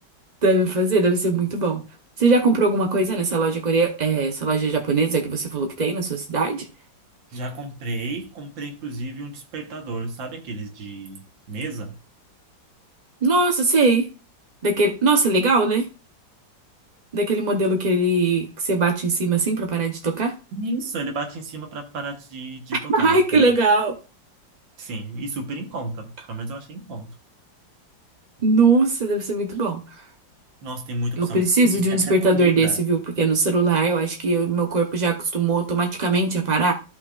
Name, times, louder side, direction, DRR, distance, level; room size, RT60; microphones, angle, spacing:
voice 1, 0.4-1.8 2.2-6.7 13.2-14.1 14.6-15.8 17.1-20.3 22.9-23.9 28.4-29.8 31.2-36.7, right 3 dB, 45° right, 3 dB, 0.5 m, -20 dB
voice 2, 7.3-12.0 20.5-23.2 24.8-27.2 30.6-31.5 31.7-32.8, right 2 dB, 85° right, 4 dB, 1.9 m, -32 dB
13.5 x 5.6 x 2.4 m, 0.33 s
omnidirectional pair, 2.0 m